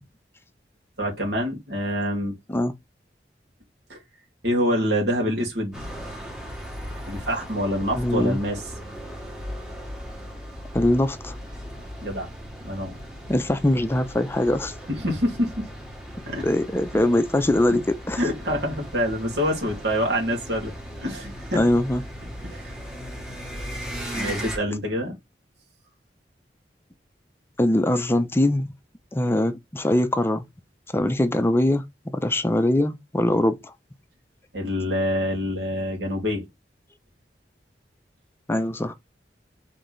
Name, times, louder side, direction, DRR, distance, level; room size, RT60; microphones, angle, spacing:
voice 1, 1.0-2.3 3.9-4.0 4.4-5.8 7.1-8.6 12.0-12.3 12.6-13.0 15.0-15.7 16.3-16.4 18.2-21.6 22.4-22.7 24.1-25.2 34.5-36.5, equal, 70° right, 2.3 m, -26 dB
sound 1, 5.7-24.6, equal, 5° right, 1.7 m, -37 dB
voice 2, 7.9-8.4 10.7-11.4 13.3-14.7 16.4-18.2 21.5-22.0 27.6-28.7 29.1-30.5 30.9-31.8 32.1-33.7 38.5-38.9, left 1 dB, 15° left, 0.4 m, -22 dB
4.2 x 3.9 x 3.1 m
head